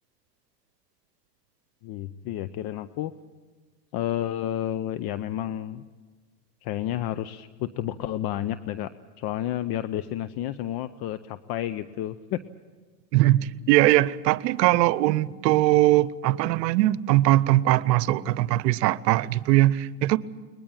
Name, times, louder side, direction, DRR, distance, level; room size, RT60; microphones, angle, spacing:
voice 1, 1.8-3.1 3.9-5.8 6.6-8.9 9.2-12.4, left 12 dB, 50° left, 13 dB, 0.8 m, -31 dB
voice 2, 13.1-20.2, right 16 dB, 80° right, 19 dB, 0.8 m, -21 dB
21.5 x 20.5 x 8.8 m, 1.4 s
supercardioid pair, 105°, 49 cm